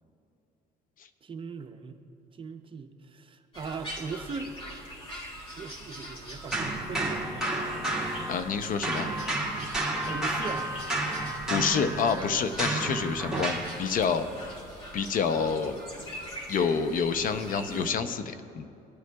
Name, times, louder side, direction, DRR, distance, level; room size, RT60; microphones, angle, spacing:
voice 1, 1.2-2.0 2.3-4.6 5.6-7.7 10.1-10.7, right 5 dB, 30° right, 7 dB, 0.7 m, -39 dB
sound 1, 3.5-17.9, equal, 35° left, 2.3 m, -43 dB
sound 2, 6.5-8.6 8.8-13.7, right 2 dB, 5° right, 1.8 m, -31 dB
voice 2, 8.3-9.1 11.5-14.6 14.9-15.8 16.5-18.7, left 6 dB, 55° left, 10 dB, 0.6 m, -28 dB
17.5 x 9.4 x 2.3 m, 2.6 s
cardioid pair, 110°, 17 cm